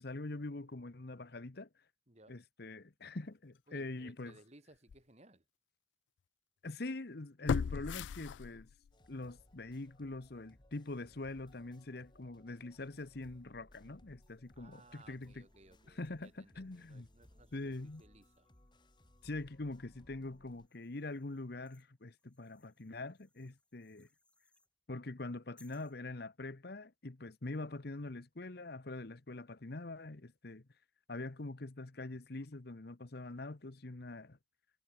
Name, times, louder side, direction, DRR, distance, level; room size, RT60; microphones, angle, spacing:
voice 1, 0.0-1.7 2.3-4.4 6.6-8.7 9.1-15.5 15.9-17.1 17.5-18.0 19.2-24.1 24.9-30.6 31.1-34.4, left 2 dB, 55° left, 1.0 m, -44 dB
voice 2, 2.1-2.4 3.7-5.4 14.5-18.5, right 2 dB, 35° right, 3.1 m, -62 dB
sound 1, 4.2-4.3 4.9-5.0 7.5-8.9 9.3-9.4, left 6 dB, 70° left, 0.4 m, -36 dB
sound 2, 8.9-20.7, left 1 dB, 25° left, 1.4 m, -64 dB
sound 3, 14.1-19.6 20.2-24.7 25.6-26.0, left 2 dB, 5° left, 4.2 m, -74 dB
head